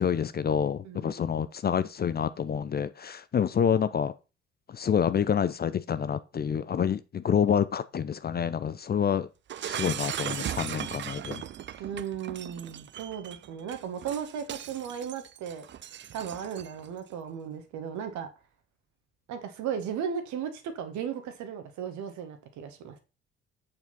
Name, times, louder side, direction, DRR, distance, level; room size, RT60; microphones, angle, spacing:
voice 1, 0.0-4.1 4.7-9.3 9.6-11.4, left 8 dB, 30° left, 0.6 m, -27 dB
voice 2, 0.8-1.4 11.8-15.7 16.1-18.3 19.3-23.0, right 8 dB, 60° right, 1.7 m, -36 dB
Shatter, 9.5-16.9, right 10 dB, 35° right, 0.6 m, -38 dB
8.1 x 6.9 x 4.1 m
figure-of-eight pair, 45°, 33 cm